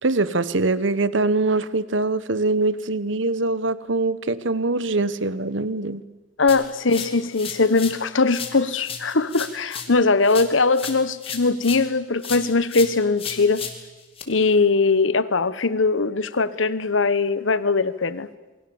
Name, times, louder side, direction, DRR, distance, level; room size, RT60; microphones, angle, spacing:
voice 1, 0.0-6.0, right 3 dB, 70° right, 1.1 m, -23 dB
voice 2, 6.4-13.6 14.3-18.3, left 3 dB, 75° left, 1.1 m, -21 dB
sound 1, 6.5-8.0 8.3-11.9 12.2-14.2, left 6 dB, 30° left, 2.8 m, -35 dB
28.0 x 23.0 x 7.1 m
head